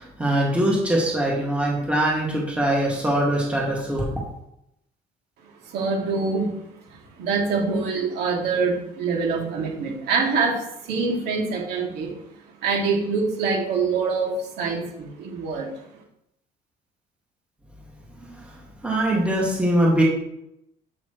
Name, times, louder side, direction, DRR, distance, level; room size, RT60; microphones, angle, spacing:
voice 1, 0.0-4.1 18.8-20.0, right 1 dB, 5° right, -4 dB, 2.3 m, -22 dB
voice 2, 5.6-6.7 7.2-12.1 12.6-15.7, right 4 dB, 75° right, -1 dB, 2.7 m, -25 dB
7.7 x 7.3 x 3.3 m, 0.79 s
cardioid pair, 110°, 17 cm